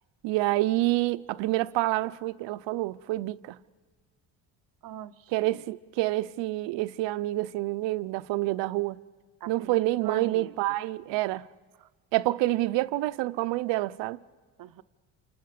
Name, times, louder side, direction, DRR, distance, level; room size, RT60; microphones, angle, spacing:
voice 1, 0.2-3.6 5.3-9.0 9.5-11.5 12.1-14.2, right 18 dB, 80° right, 0.8 m, -28 dB
voice 2, 4.8-5.6 9.4-10.6 11.8-11.9 14.6-14.8, right 10 dB, 50° right, 0.8 m, -41 dB
29.0 x 26.5 x 6.7 m
cardioid pair, 120°, 42 cm